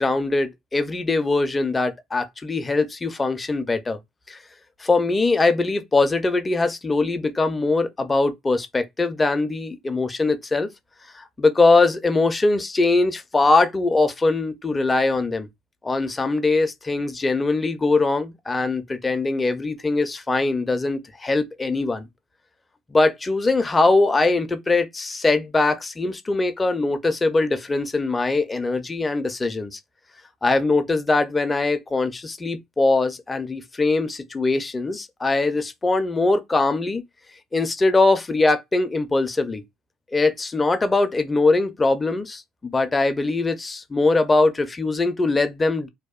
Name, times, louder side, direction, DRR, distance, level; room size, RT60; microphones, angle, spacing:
voice 1, 0.0-4.0 4.3-4.4 4.8-10.7 11.1-15.5 15.8-22.1 22.9-29.8 30.4-37.0 37.5-39.6 40.1-45.9, left 3 dB, 20° left, 0.4 m, -21 dB
2.7 x 2.0 x 2.3 m
cardioid pair, 115°, 0 cm